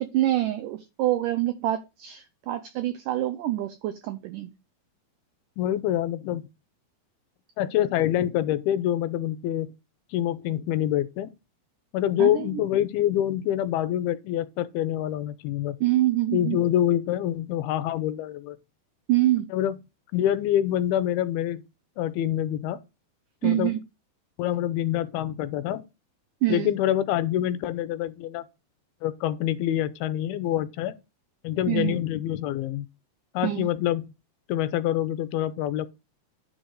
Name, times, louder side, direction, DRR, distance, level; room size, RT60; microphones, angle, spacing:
voice 1, 0.0-4.5 12.2-12.6 15.8-16.6 19.1-19.5 23.4-23.8 26.4-26.7 31.7-32.0 33.4-33.7, right 14 dB, 85° right, 1.8 m, -26 dB
voice 2, 5.6-6.5 7.6-9.7 10.1-11.3 11.9-15.8 16.3-18.6 19.5-19.8 20.1-21.6 22.0-22.8 23.4-23.7 24.4-25.8 26.5-28.4 29.0-30.9 31.4-32.9 33.3-34.1 34.5-35.9, left 12 dB, 80° left, 2.5 m, -26 dB
9.9 x 4.0 x 6.3 m
omnidirectional pair, 4.5 m